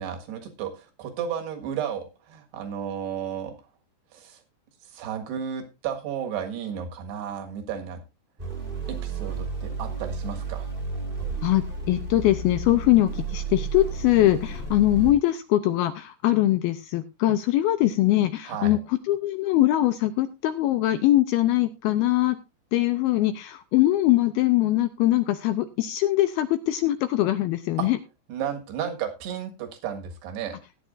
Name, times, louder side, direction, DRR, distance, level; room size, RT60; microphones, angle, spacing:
voice 1, 0.0-3.5 4.1-4.4 4.9-8.0 8.9-10.7 18.5-18.8 27.8-27.9 28.3-30.6, right 8 dB, 75° right, 5 dB, 3.6 m, -33 dB
sound 1, 8.4-15.1, right 4 dB, 45° right, 0.6 m, -32 dB
voice 2, 11.4-22.4 22.7-28.0, left 14 dB, 80° left, 10 dB, 2.3 m, -22 dB
17.5 x 9.3 x 2.5 m, 0.25 s
omnidirectional pair, 4.9 m